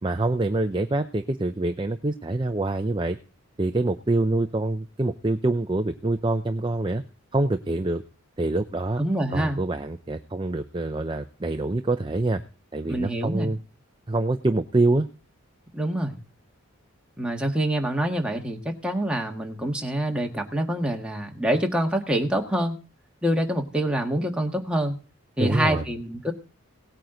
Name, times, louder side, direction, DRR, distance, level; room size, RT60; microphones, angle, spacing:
voice 1, 0.0-3.2 3.6-7.0 7.3-8.0 8.4-9.0 9.3-12.4 12.7-13.6 14.1-15.1 25.4-25.8, right 2 dB, 20° right, 7 dB, 0.5 m, -25 dB
voice 2, 9.0-9.6 12.9-13.5 15.7-16.1 17.2-22.8 23.2-24.9 25.4-26.3, right 1 dB, 5° right, 1 dB, 1.7 m, -26 dB
18.0 x 9.1 x 3.9 m, 0.36 s
head